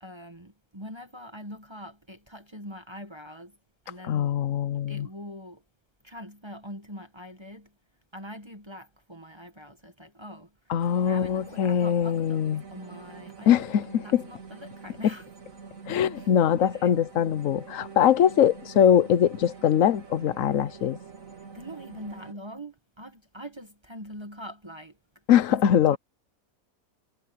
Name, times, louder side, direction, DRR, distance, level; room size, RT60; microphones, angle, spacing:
voice 1, 0.0-3.6 3.8-4.4 4.9-5.6 6.0-7.7 8.1-12.4 12.7-15.2 16.2-16.3 16.6-16.9 21.4-25.2 25.5-26.0, equal, 20° right, 1.4 m, -43 dB
voice 2, 4.1-5.1 10.7-12.6 13.5-14.2 15.9-21.0 25.3-26.0, left 9 dB, 65° left, 1.1 m, -22 dB
sound 1, 10.8-22.3, right 5 dB, 60° right, 2.8 m, -46 dB
omnidirectional pair, 1.6 m